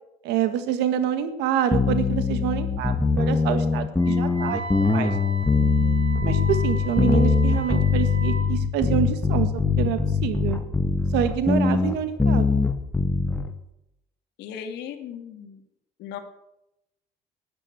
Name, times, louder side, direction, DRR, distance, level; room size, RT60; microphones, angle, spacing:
voice 1, 0.2-5.1 6.2-10.6 11.1-12.7, right 9 dB, 90° right, 10 dB, 1.7 m, -27 dB
sound 1, 1.7-13.5, left 4 dB, 10° left, 1.3 m, -22 dB
Wind instrument woodwind instrument, 3.9-8.5, right 1 dB, 35° right, 6.6 m, -37 dB
voice 2, 5.5-6.1 14.4-15.6 16.0-16.2, left 8 dB, 85° left, 7 dB, 2.0 m, -38 dB
12.5 x 10.0 x 7.9 m, 0.86 s
cardioid pair, 110°, 17 cm